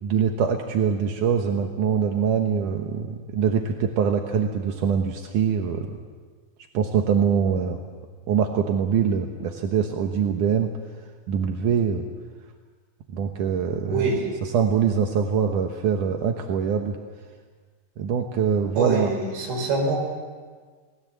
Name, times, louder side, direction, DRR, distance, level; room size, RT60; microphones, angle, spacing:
voice 1, 0.0-6.0 6.7-7.8 8.3-10.7 11.3-12.0 13.1-14.1 14.4-17.0 18.0-19.1, right 7 dB, 70° right, 4 dB, 2.1 m, -23 dB
voice 2, 13.9-14.3 18.8-20.0, right 3 dB, 85° right, 1 dB, 7.4 m, -25 dB
29.0 x 20.0 x 7.6 m, 1.5 s
omnidirectional pair, 5.1 m